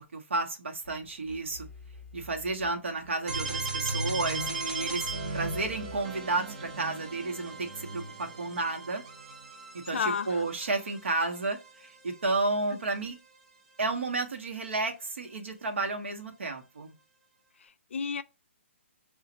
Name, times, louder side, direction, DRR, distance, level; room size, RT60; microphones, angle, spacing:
voice 1, 0.0-1.7 2.1-9.0 9.7-13.2 13.8-16.9, right 3 dB, 65° right, 1.1 m, -32 dB
sound 1, 0.8-6.0, left 2 dB, 5° right, 1.0 m, -50 dB
sound 2, 3.3-13.0, right 3 dB, 25° right, 0.7 m, -37 dB
voice 2, 9.9-10.4 12.7-12.8 17.6-18.2, left 6 dB, 65° left, 0.4 m, -32 dB
4.9 x 2.4 x 2.8 m
hypercardioid pair, 175°, 7 cm